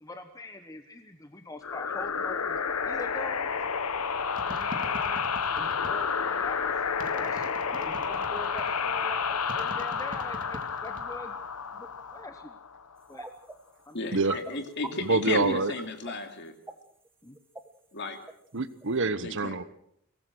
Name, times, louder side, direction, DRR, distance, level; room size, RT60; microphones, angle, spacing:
voice 1, 0.0-2.6 2.8-3.6 4.5-5.2 5.5-6.7 7.1-11.4 11.7-12.6 13.1-13.3 13.9-14.6 17.2-17.4, left 1 dB, 15° left, 7 dB, 1.0 m, -43 dB
sound 1, 1.6-13.0, left 6 dB, 85° left, 1.1 m, -30 dB
sound 2, 4.4-6.2 7.0-8.8 9.5-11.2 11.5-12.0, right 1 dB, 40° right, 2.3 m, -43 dB
sound 3, 13.1-13.5 13.8-13.9 14.3-14.5 14.8-15.3 15.8-16.1 16.5-17.1 17.3-17.7 18.3-18.4 18.8-18.9, right 2 dB, 10° right, 1.2 m, -38 dB
voice 2, 13.9-16.5 17.9-18.2 19.2-19.6, left 3 dB, 50° left, 6 dB, 2.7 m, -34 dB
voice 3, 15.0-15.7 18.5-19.6, right 3 dB, 60° right, 14 dB, 1.1 m, -26 dB
23.0 x 18.5 x 6.3 m, 0.70 s
head